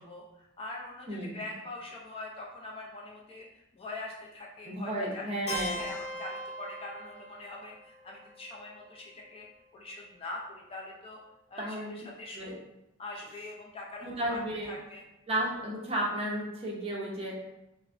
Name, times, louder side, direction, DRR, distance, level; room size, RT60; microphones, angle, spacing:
voice 1, 0.0-5.3 5.7-9.5 9.7-11.2 11.5-12.6 13.0-14.4 14.7-15.0, left 2 dB, 25° left, -2 dB, 0.3 m, -43 dB
voice 2, 1.1-1.4 4.7-5.8 11.6-11.9 12.3-12.6 14.0-14.7 15.3-17.5, right 1 dB, 30° right, -2 dB, 0.5 m, -33 dB
Keyboard (musical), 5.5-9.4, left 1 dB, 80° left, 0.8 m, -40 dB
3.3 x 2.0 x 2.4 m, 0.89 s
head